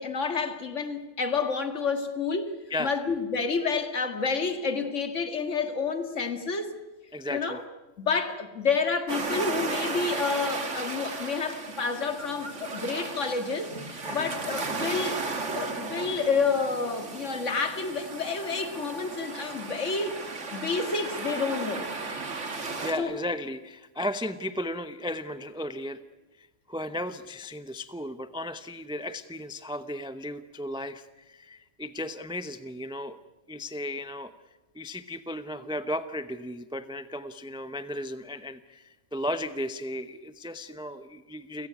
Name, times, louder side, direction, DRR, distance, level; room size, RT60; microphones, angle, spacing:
voice 1, 0.0-6.7 7.3-7.6 8.0-15.2 15.5-20.2 20.5-21.9 23.0-23.2, left 4 dB, 75° left, 2.3 m, -29 dB
voice 2, 7.1-7.6 14.0-14.3 22.8-26.0 26.4-33.2 33.5-34.3 34.7-41.7, left 1 dB, 5° right, 0.7 m, -35 dB
sound 1, 9.1-22.9, right 3 dB, 70° right, 2.5 m, -35 dB
30.0 x 17.0 x 9.4 m
omnidirectional pair, 1.3 m